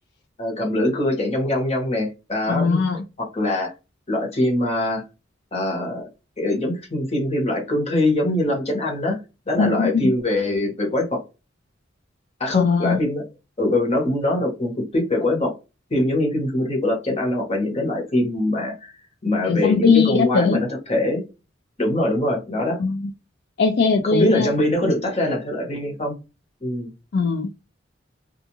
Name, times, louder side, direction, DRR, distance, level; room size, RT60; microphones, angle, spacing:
voice 1, 0.4-2.8 3.2-3.7 4.1-5.0 5.5-6.1 6.4-9.2 9.5-11.2 12.4-13.2 13.6-15.5 15.9-19.0 19.2-21.2 21.8-22.8 24.0-26.2 26.6-26.9, left 1 dB, 35° left, 0 dB, 1.1 m, -23 dB
voice 2, 2.5-3.0 9.6-10.1 12.5-13.0 19.4-20.6 22.8-23.0 23.6-24.5 27.1-27.5, left 4 dB, 60° left, 4 dB, 0.4 m, -19 dB
2.4 x 2.3 x 2.9 m, 0.27 s
head